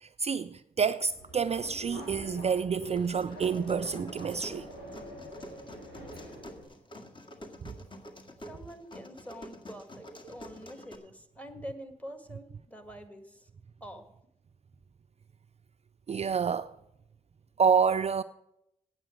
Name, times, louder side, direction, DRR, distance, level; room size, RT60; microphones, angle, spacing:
voice 1, 0.0-4.7 16.1-16.7 17.6-18.2, right 6 dB, 40° right, 0.4 m, -28 dB
Subway metro underground, 1.0-6.6, equal, 85° left, 5.0 m, -45 dB
sound 1, 3.0-11.0, left 1 dB, 30° left, 2.0 m, -48 dB
voice 2, 8.3-13.5 13.8-14.1, equal, 10° left, 1.9 m, -46 dB
8.8 x 7.5 x 9.0 m
supercardioid pair, 40°, 17 cm